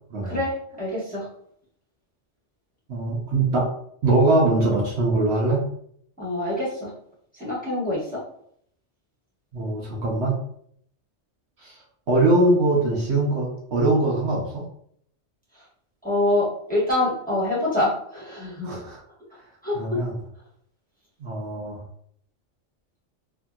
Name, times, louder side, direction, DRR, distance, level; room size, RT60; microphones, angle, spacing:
voice 1, 0.2-1.3 6.2-6.9 7.3-8.2 15.5-15.6 16.0-18.7 19.6-20.0, left 1 dB, 5° left, -9 dB, 1.2 m, -25 dB
voice 2, 2.9-3.7 4.0-5.7 9.5-10.4 11.6-11.8 12.1-14.6 18.6-19.0 19.7-20.1 21.2-21.8, right 2 dB, 65° right, -3 dB, 0.9 m, -22 dB
2.9 x 2.7 x 2.3 m, 0.66 s
omnidirectional pair, 1.3 m